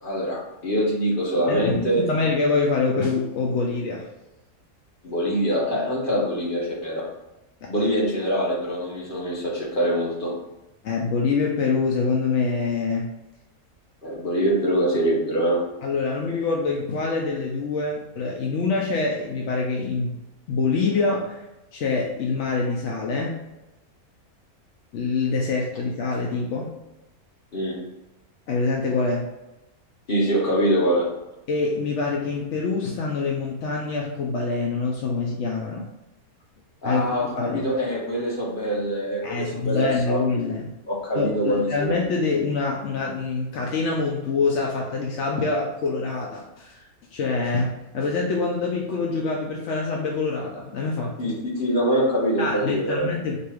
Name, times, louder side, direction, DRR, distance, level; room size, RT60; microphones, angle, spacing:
voice 1, 0.0-2.0 5.0-7.1 7.7-10.3 14.0-15.6 27.5-27.8 30.1-31.1 36.8-40.2 40.9-41.9 51.2-53.1, equal, 35° left, -5 dB, 1.4 m, -24 dB
voice 2, 1.5-1.8 2.1-4.1 7.6-7.7 10.8-13.1 15.8-20.2 20.5-21.4 21.7-23.4 24.9-26.8 28.5-29.3 31.5-35.9 36.8-37.0 37.4-37.6 39.2-40.7 41.2-51.3 52.4-53.4, left 4 dB, 65° left, -1 dB, 0.8 m, -25 dB
4.1 x 2.7 x 4.8 m, 0.97 s
omnidirectional pair, 1.6 m